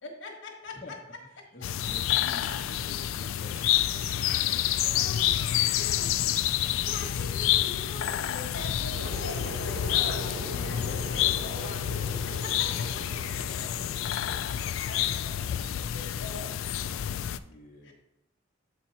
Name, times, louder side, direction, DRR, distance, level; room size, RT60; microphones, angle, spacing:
voice 1, 0.0-0.8 4.9-5.5 5.8-6.2 6.8-12.7 14.8-15.4 15.9-16.5 17.8-17.9, left 2 dB, 65° left, 1 dB, 1.3 m, -42 dB
voice 2, 0.6-0.9 1.2-6.1 12.4-13.9 14.1-14.4 15.1-15.8 17.4-17.9, left 1 dB, 40° left, -4 dB, 1.0 m, -49 dB
sound 1, 1.6-17.4, left 11 dB, 80° left, 0.3 m, -28 dB
sound 2, 3.5-7.7 8.1-8.2, right 3 dB, 35° right, 0.8 m, -52 dB
sound 3, 8.9-15.1, equal, 90° right, 1.5 m, -41 dB
8.0 x 4.4 x 4.2 m, 0.89 s
head